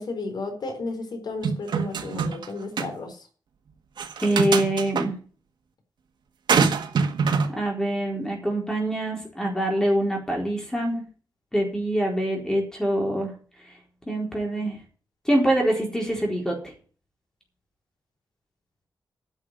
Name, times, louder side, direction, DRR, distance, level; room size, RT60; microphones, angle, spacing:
voice 1, 0.0-3.2, left 3 dB, 70° left, 5 dB, 4.1 m, -33 dB
sound 1, 1.4-2.5 2.8-2.9 4.0-5.1 6.5-7.5, right 5 dB, 90° right, 1.5 m, -23 dB
voice 2, 4.2-5.2 7.5-11.0 11.5-13.3 14.1-14.8 15.2-16.7, right 1 dB, 10° left, 0 dB, 4.1 m, -25 dB
11.0 x 6.6 x 9.3 m, 0.40 s
wide cardioid pair, 125°, 7 cm